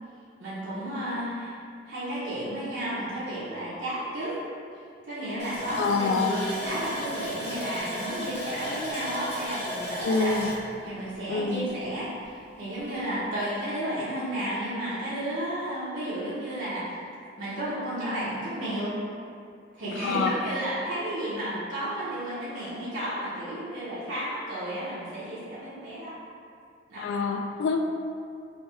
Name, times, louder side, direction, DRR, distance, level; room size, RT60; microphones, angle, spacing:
voice 1, 0.4-1.5 1.8-4.4 5.0-10.3 10.8-17.0 17.4-18.9 19.7-26.1 26.9-27.1, right 1 dB, 90° right, -11 dB, 0.9 m, -32 dB
Water tap faucet, 5.4-11.9 12.2-12.3 12.8-12.9, equal, 35° left, 1.0 m, -35 dB
voice 2, 5.7-6.4 10.0-10.5 11.3-11.7 20.0-20.3 27.0-27.9, left 4 dB, 85° left, 4 dB, 0.3 m, -26 dB
3.3 x 2.2 x 4.1 m, 2.3 s
head